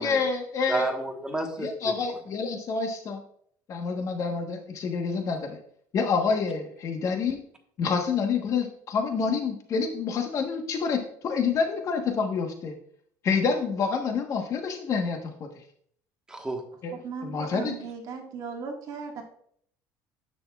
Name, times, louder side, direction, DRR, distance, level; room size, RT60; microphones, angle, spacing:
voice 1, 0.0-0.9 1.6-3.2 3.7-5.6 5.9-7.4 7.8-12.7 13.2-15.5 16.8-17.7, left 5 dB, 45° left, 4 dB, 1.2 m, -28 dB
voice 2, 0.7-1.9 16.3-16.6, right 2 dB, 10° right, 2 dB, 1.3 m, -30 dB
voice 3, 17.0-19.2, right 5 dB, 55° right, 2 dB, 1.7 m, -37 dB
10.0 x 6.9 x 2.3 m, 0.63 s
cardioid pair, 135°, 8 cm